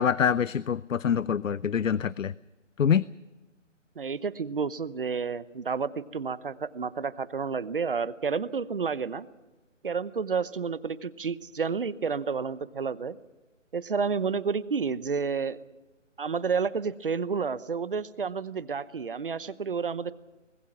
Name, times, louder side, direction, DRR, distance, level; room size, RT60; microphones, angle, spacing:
voice 1, 0.0-2.3 2.8-3.0, left 8 dB, 85° left, 20 dB, 0.6 m, -25 dB
voice 2, 4.0-9.3 9.8-13.2 13.7-15.6 16.2-20.1, right 5 dB, 45° right, 17 dB, 0.9 m, -30 dB
25.0 x 20.5 x 6.0 m, 1.1 s
figure-of-eight pair, 165°, 38 cm